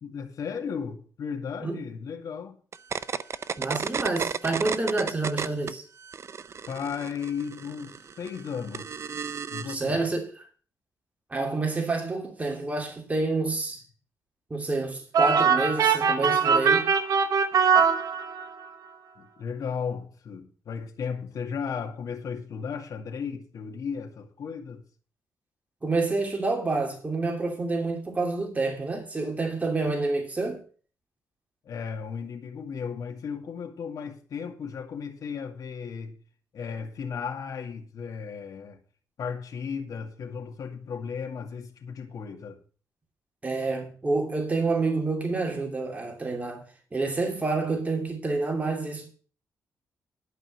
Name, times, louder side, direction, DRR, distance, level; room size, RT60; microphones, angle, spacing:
voice 1, 0.0-2.6 6.7-8.9 9.5-10.1 19.2-24.8 31.6-36.2 36.5-38.8 39.2-42.6, left 6 dB, 65° left, 2.2 m, -35 dB
sound 1, 2.7-5.7 6.0-9.8, right 6 dB, 45° right, 0.6 m, -33 dB
voice 2, 3.6-5.8 9.6-10.5 11.3-13.8 14.5-16.9 25.8-30.6 43.4-46.6 46.9-49.1, right 3 dB, 25° right, 2.9 m, -28 dB
sound 2, 15.1-18.7, right 6 dB, 70° right, 1.1 m, -22 dB
11.5 x 5.5 x 7.9 m
cardioid pair, 100°, 6 cm